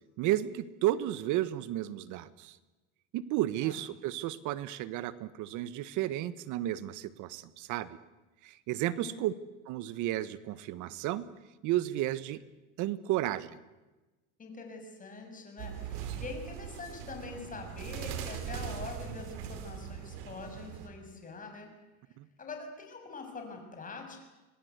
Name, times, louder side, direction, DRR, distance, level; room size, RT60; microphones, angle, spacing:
voice 1, 0.2-2.6 3.1-8.0 8.4-9.3 9.7-11.3 11.6-12.4 12.8-13.6 22.2-22.3, right 14 dB, 60° right, 15 dB, 1.5 m, -32 dB
voice 2, 14.4-21.7 22.4-24.2, left 4 dB, 25° left, 4 dB, 6.8 m, -44 dB
sound 1, 15.6-20.9, right 9 dB, 75° right, 3.9 m, -40 dB
26.5 x 19.5 x 8.3 m, 1.1 s
supercardioid pair, 120°, 35 cm